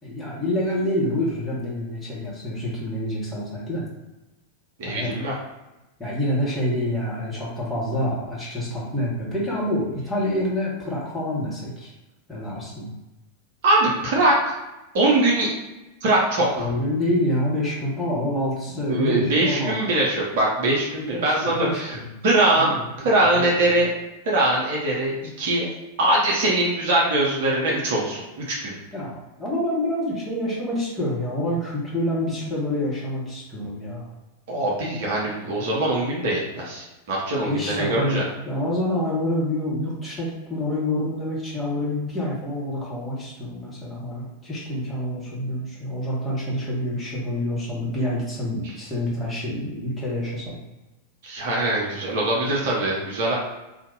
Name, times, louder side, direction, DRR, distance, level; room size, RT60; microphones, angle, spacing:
voice 1, 0.0-3.8 4.8-5.1 6.0-11.9 12.3-12.9 16.5-19.8 21.0-22.2 22.5-23.5 28.9-34.1 37.4-50.5, left 1 dB, 10° left, -7 dB, 1.4 m, -27 dB
voice 2, 4.8-5.3 13.6-14.5 14.9-15.5 16.0-16.6 18.9-22.0 22.2-23.9 24.2-25.1 25.4-25.7 26.0-28.7 34.5-38.2 51.2-53.3, right 2 dB, 55° right, -4 dB, 0.9 m, -22 dB
2.7 x 2.5 x 3.9 m, 1.0 s
figure-of-eight pair, 90°, 0 cm